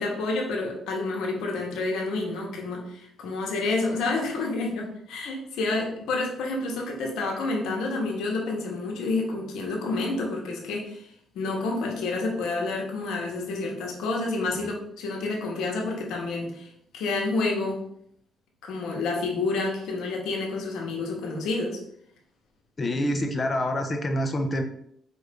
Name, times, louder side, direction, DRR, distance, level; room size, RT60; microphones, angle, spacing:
voice 1, 0.0-11.1 11.3-16.7 16.9-17.9 18.6-21.8, left 3 dB, 85° left, 0 dB, 1.1 m, -29 dB
voice 2, 22.8-24.6, left 1 dB, 35° left, 4 dB, 0.7 m, -26 dB
4.9 x 2.7 x 3.4 m, 0.71 s
cardioid pair, 90°, 0 cm